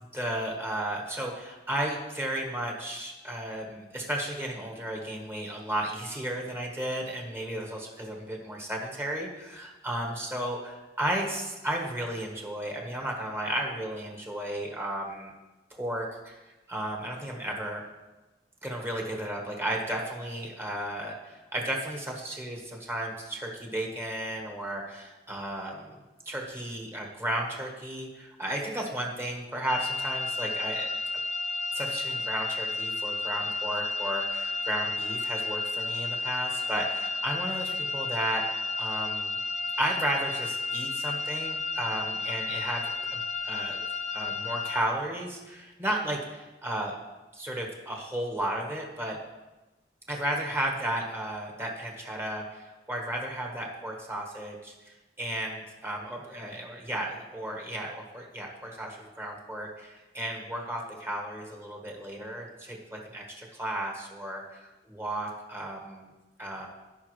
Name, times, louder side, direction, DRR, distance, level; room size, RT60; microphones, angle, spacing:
voice 1, 0.1-15.3 15.7-16.3 16.7-17.8 18.6-26.0 26.2-30.9 31.7-38.4 38.8-39.4 39.8-42.8 43.1-43.9 44.1-47.0 47.3-49.2 50.1-66.1 66.4-66.7, right 1 dB, 15° right, 0 dB, 1.3 m, -34 dB
sound 1, 29.7-44.8, left 3 dB, 40° left, 0.6 m, -32 dB
14.5 x 5.6 x 3.2 m, 1.1 s
head